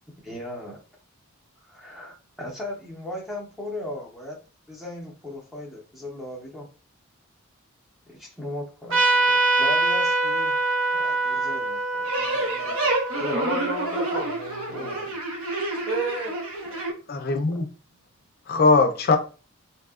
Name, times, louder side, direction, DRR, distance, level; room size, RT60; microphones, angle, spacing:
voice 1, 0.2-0.8 1.6-4.4 4.7-6.7 8.1-10.6 10.9-13.6 14.7-15.0 17.5-17.6, left 1 dB, ahead, 0.6 m, -37 dB
Trumpet, 8.9-14.0, right 3 dB, 60° right, 0.7 m, -24 dB
sound 1, 12.0-16.9, right 2 dB, 85° right, 0.9 m, -28 dB
voice 2, 13.3-15.2 15.8-16.3, right 2 dB, 25° right, 1.0 m, -31 dB
voice 3, 17.1-17.7 18.5-19.2, left 3 dB, 45° left, 0.4 m, -20 dB
2.6 x 2.3 x 2.3 m
head